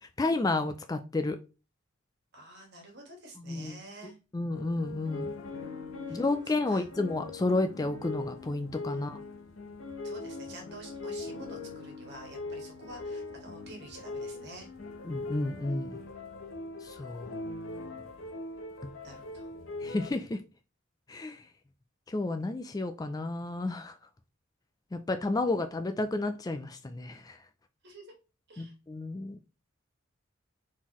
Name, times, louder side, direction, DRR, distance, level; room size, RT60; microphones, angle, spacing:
voice 1, 0.2-1.4 3.4-3.8 4.3-5.3 6.1-9.2 15.1-16.0 16.8-17.3 18.8-18.9 19.8-20.4 21.1-21.4 22.1-23.9 24.9-27.4 28.6-29.4, left 2 dB, 20° left, 0.3 m, -31 dB
voice 2, 2.3-4.2 6.1-6.8 8.9-9.0 10.0-14.7 19.0-19.5 25.4-25.5 27.8-28.1 28.5-28.7, right 2 dB, 55° right, 1.5 m, -49 dB
sound 1, 4.5-20.1, left 3 dB, 80° left, 0.8 m, -41 dB
4.3 x 3.8 x 3.0 m
head